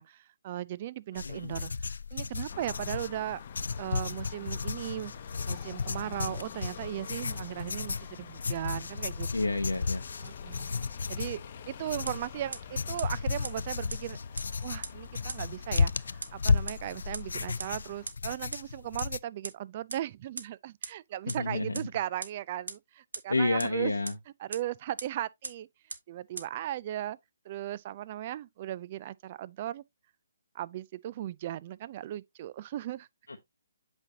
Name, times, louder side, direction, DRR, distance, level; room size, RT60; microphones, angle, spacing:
voice 1, 0.0-3.4 3.8-5.1 5.5-9.3 10.2-10.7 11.1-11.4 11.7-14.2 14.6-23.9 24.4-25.7 26.1-27.2 27.5-29.8 30.5-33.1, right 13 dB, 40° right, 0.4 m, -37 dB
voice 2, 1.1-1.6 9.3-10.0 21.3-21.8 23.3-24.1 33.3-33.4, left 2 dB, 90° left, 0.8 m, -30 dB
sound 1, 1.2-19.2, left 4 dB, 70° left, 0.3 m, -34 dB
sound 2, 2.5-18.1, left 8 dB, 45° left, 0.8 m, -48 dB
sound 3, 12.1-12.2 12.5-12.6 13.0-13.1 13.4-13.5 13.9-14.0 14.4-14.5 14.8-14.9 15.3-15.4 15.7-15.8 16.2-16.3 16.7-16.8 17.1-17.2 17.6-17.7 18.1-18.2 18.5-18.6 19.0-19.1 19.4-19.5 19.9-20.0 20.4-20.5 20.8-20.9 21.3-21.4 21.7-21.8 22.2-22.3 22.7-22.8 23.1-23.2 23.6-23.7 24.1-24.2 24.5-24.6 25.0-25.1 25.4-25.5 25.9-26.0 26.4-26.5, right 4 dB, 75° right, 1.2 m, -36 dB
8.1 x 5.3 x 2.8 m
figure-of-eight pair, 140°, 0 cm